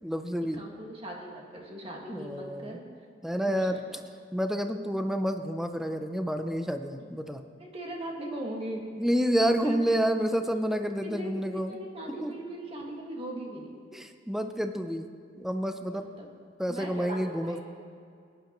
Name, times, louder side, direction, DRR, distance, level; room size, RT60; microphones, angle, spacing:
voice 1, 0.0-0.6 2.1-2.8 3.2-3.8 4.3-7.4 8.9-11.8 12.2-12.3 13.9-15.1 15.4-16.1 16.6-17.6, equal, ahead, 7 dB, 0.5 m, -29 dB
voice 2, 0.5-2.8 3.4-4.0 7.0-7.1 7.6-8.9 9.6-9.8 10.5-10.6 11.0-13.8 15.9-16.3 16.7-17.6, right 1 dB, 35° right, -1 dB, 1.8 m, -39 dB
18.0 x 10.5 x 3.0 m, 2.3 s
head